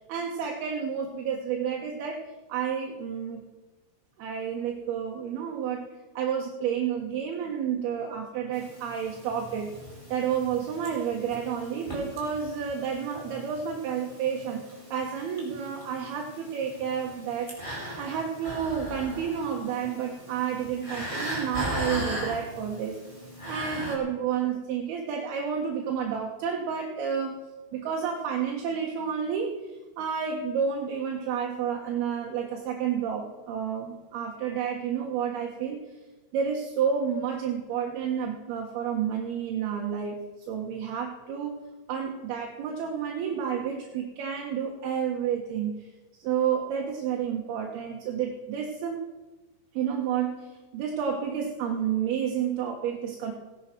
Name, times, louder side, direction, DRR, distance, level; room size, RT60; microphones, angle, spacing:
voice 1, 0.1-2.2 2.5-3.4 4.2-5.9 6.1-9.7 10.1-17.5 18.0-23.0 23.5-27.4 27.7-35.8 36.3-40.2 40.5-41.6 41.9-45.9 46.2-49.0 49.7-53.3, right 7 dB, 65° right, 0 dB, 2.8 m, -30 dB
sound 1, 8.5-23.9, equal, 5° left, 3.7 m, -39 dB
17.0 x 10.5 x 6.0 m, 1.1 s
omnidirectional pair, 5.8 m